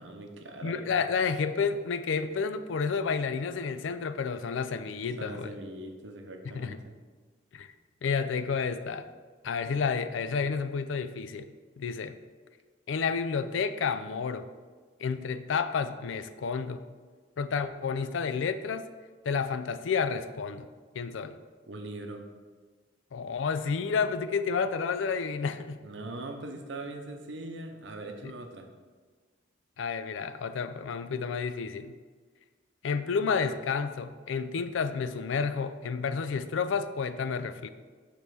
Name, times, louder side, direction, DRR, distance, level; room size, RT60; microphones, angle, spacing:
voice 1, 0.0-0.9 5.2-7.0 21.7-22.2 25.8-28.7, right 2 dB, 70° right, 5 dB, 0.8 m, -41 dB
voice 2, 0.6-5.5 6.5-6.8 7.5-7.7 8.0-9.1 9.4-11.5 11.8-12.2 12.9-14.5 15.0-16.8 17.4-18.9 19.2-20.6 20.9-21.4 23.1-25.8 29.8-31.9 32.8-37.7, left 5 dB, 75° left, 10 dB, 0.4 m, -30 dB
5.4 x 4.2 x 6.1 m, 1.4 s
head